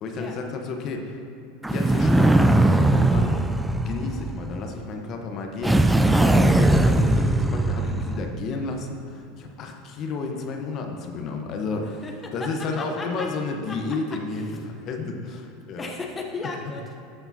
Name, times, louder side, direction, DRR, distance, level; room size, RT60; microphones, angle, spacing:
voice 1, 0.0-1.2 1.7-2.5 2.9-3.5 3.8-15.9, left 3 dB, 45° left, 3 dB, 1.0 m, -32 dB
sound 1, 1.6-4.7 5.6-8.3, right 1 dB, 5° right, 0.4 m, -20 dB
voice 2, 12.0-12.5 12.8-13.3 13.7-13.8 15.8-17.0, left 3 dB, 20° left, 1 dB, 0.9 m, -35 dB
13.0 x 6.9 x 2.8 m, 2.7 s
hypercardioid pair, 100°, 0 cm